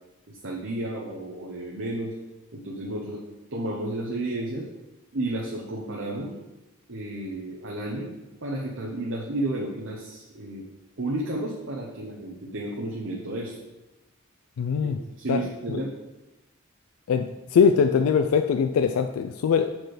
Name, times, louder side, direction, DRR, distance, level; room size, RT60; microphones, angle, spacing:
voice 1, 0.3-2.1 2.5-3.2 3.5-4.7 5.1-6.3 6.9-8.1 8.4-10.6 11.0-13.5 14.8-15.9, right 1 dB, 60° right, -3 dB, 0.9 m, -32 dB
voice 2, 14.6-15.0 15.3-15.8 17.1-19.7, left 6 dB, 80° left, 8 dB, 0.3 m, -22 dB
6.1 x 4.4 x 4.9 m, 1.0 s
head